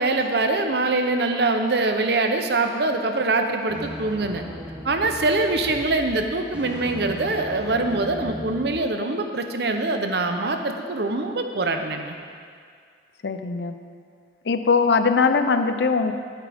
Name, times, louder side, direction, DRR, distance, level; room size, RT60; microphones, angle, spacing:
voice 1, 0.0-4.4 4.8-12.2, right 2 dB, 60° right, 5 dB, 0.7 m, -23 dB
sound 1, 3.7-8.7, equal, 10° right, 1.0 m, -38 dB
voice 2, 13.2-13.8 14.4-16.1, left 4 dB, 70° left, 8 dB, 0.6 m, -21 dB
12.5 x 8.9 x 3.5 m, 2.1 s
head